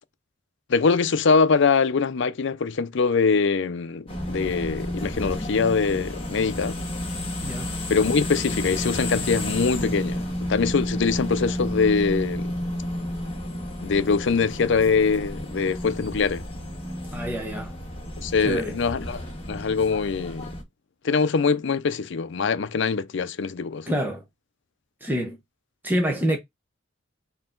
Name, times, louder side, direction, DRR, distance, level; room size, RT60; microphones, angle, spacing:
voice 1, 0.7-6.8 7.9-12.5 13.8-16.4 18.2-20.5 21.0-23.9, left 5 dB, 65° left, 0.5 m, -23 dB
sound 1, 4.1-20.6, left 1 dB, 30° left, 2.0 m, -31 dB
voice 2, 7.4-7.7 17.1-17.7 18.4-18.8 23.9-24.2 25.0-25.4 25.8-26.4, equal, 10° right, 0.9 m, -26 dB
4.6 x 2.9 x 3.8 m
head